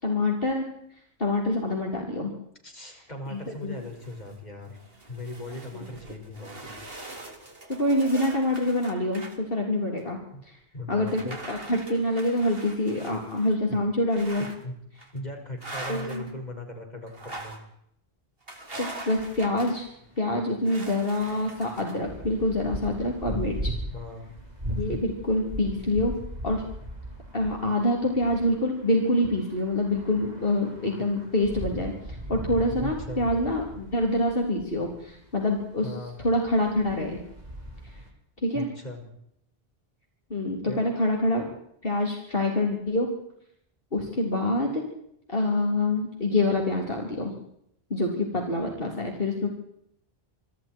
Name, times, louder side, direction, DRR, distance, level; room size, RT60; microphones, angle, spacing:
voice 1, 0.0-0.7 1.2-2.3 3.3-3.7 5.7-5.9 7.7-10.6 10.9-14.4 15.9-16.2 18.8-19.9 20.2-23.7 24.8-26.1 26.4-26.6 27.3-37.2 37.8-37.9 38.4-38.7 40.3-41.5 41.8-43.1 43.9-44.8 45.3-47.3 47.9-49.5, left 1 dB, 60° left, 0 dB, 3.8 m, -26 dB
voice 2, 2.6-4.8 5.1-6.7 10.3-10.4 10.7-11.4 13.7-13.8 14.6-14.7 15.1-17.6 23.9-24.3 24.9-25.0 32.8-33.3 35.8-36.2 38.5-39.0 40.7-40.9, left 1 dB, 40° left, 2 dB, 6.0 m, -38 dB
sound 1, 3.5-4.3 4.7-9.4 10.0-10.1 11.0-13.5 14.1-14.6 15.0-15.2 15.6-16.3 17.1-17.6 18.5-19.9 20.6-22.0, right 2 dB, 60° right, 3.6 m, -42 dB
sound 2, 19.2-35.9 36.2-38.1, right 1 dB, 40° right, 4.4 m, -39 dB
27.5 x 25.5 x 4.6 m, 0.74 s
omnidirectional pair, 1.1 m